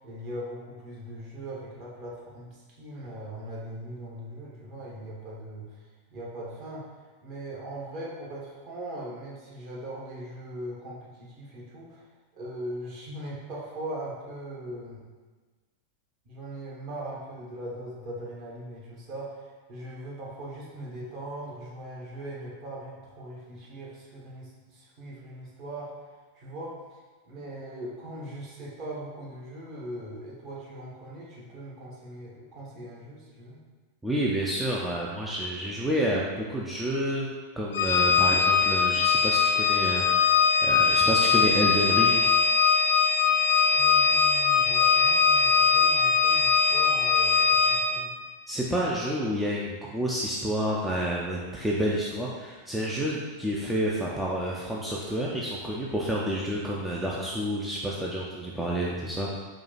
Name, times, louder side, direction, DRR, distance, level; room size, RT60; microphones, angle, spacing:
voice 1, 0.0-5.8 6.1-6.8 7.2-12.0 12.3-15.0 16.2-25.9 26.3-26.8 27.3-33.6 43.7-48.1, right 1 dB, 40° right, -5 dB, 1.3 m, -40 dB
voice 2, 34.0-37.3 37.6-42.3 48.5-59.3, equal, 5° right, -5 dB, 0.5 m, -29 dB
Organ, 37.7-48.1, left 6 dB, 60° left, 0.3 m, -21 dB
4.8 x 2.3 x 4.1 m, 1.3 s
figure-of-eight pair, 90°, 0 cm